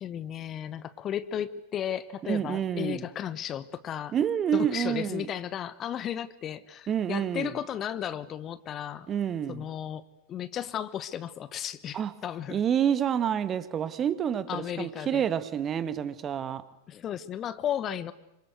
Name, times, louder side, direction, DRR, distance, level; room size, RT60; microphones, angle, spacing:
voice 1, 0.0-4.1 4.5-9.1 9.5-10.0 10.3-12.6 14.5-15.3 16.9-18.1, left 10 dB, 30° left, 1.1 m, -34 dB
voice 2, 2.2-3.1 4.1-5.3 6.9-7.5 9.1-9.7 11.9-12.1 12.5-16.6, right 9 dB, 25° right, 1.7 m, -28 dB
28.0 x 25.5 x 8.0 m
figure-of-eight pair, 90°, 0 cm